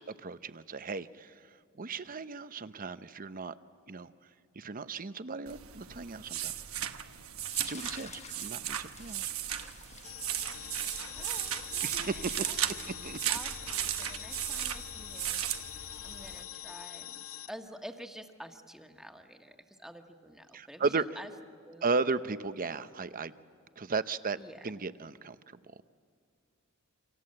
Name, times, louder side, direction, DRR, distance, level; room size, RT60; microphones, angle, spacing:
voice 1, 0.1-1.3 1.8-3.5 3.9-4.1 4.6-6.5 7.6-9.3 11.8-12.5 13.0-13.2 20.5-21.0 21.8-23.3 23.8-24.4 24.6-25.4, right 4 dB, 40° right, 13 dB, 0.8 m, -35 dB
sound 1, 5.5-16.4, right 11 dB, 90° right, 1.2 m, -36 dB
sound 2, 7.4-13.4, left 6 dB, 30° left, 1.1 m, -52 dB
sound 3, 10.0-17.5, left 13 dB, 70° left, 0.6 m, -44 dB
voice 2, 10.8-12.1 12.4-13.0 13.3-15.5 15.7-21.3 21.6-21.9 24.4-24.7, equal, ahead, 4 dB, 1.5 m, -49 dB
28.5 x 25.5 x 7.7 m, 2.2 s
head